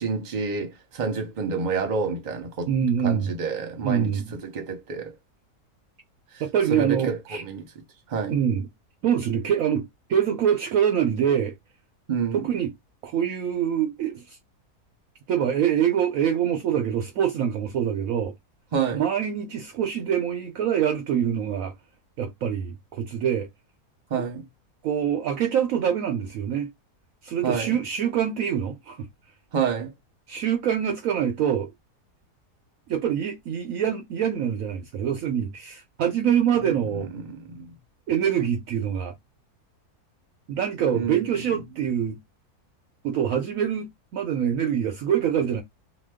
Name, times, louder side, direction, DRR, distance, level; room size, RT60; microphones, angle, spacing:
voice 1, 0.0-2.7 3.0-5.1 6.7-7.6 8.1-8.4 12.1-12.4 18.7-19.0 24.1-24.4 27.4-27.7 29.5-29.9 36.5-37.7 40.9-41.3, right 5 dB, 35° right, 0.8 m, -28 dB
voice 2, 2.7-3.3 3.8-4.3 6.4-7.4 8.3-8.7 9.0-11.5 12.3-12.7 13.0-14.4 15.3-18.3 18.9-21.7 22.2-23.5 24.8-26.7 27.2-29.1 30.3-31.7 32.9-37.1 38.1-39.1 40.5-42.2 43.0-45.6, right 9 dB, 70° right, 0.9 m, -25 dB
2.8 x 2.2 x 3.4 m
omnidirectional pair, 1.7 m